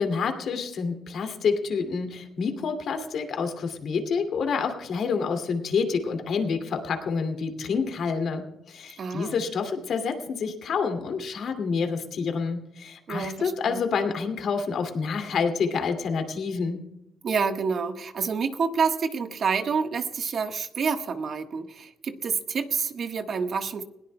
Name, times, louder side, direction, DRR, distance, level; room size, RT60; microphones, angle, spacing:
voice 1, 0.0-16.8, left 5 dB, 65° left, 5 dB, 2.4 m, -28 dB
voice 2, 9.0-9.3 13.1-13.8 17.2-23.8, right 5 dB, 55° right, 7 dB, 1.3 m, -28 dB
20.5 x 17.5 x 2.2 m, 0.87 s
cardioid pair, 90°, 0 cm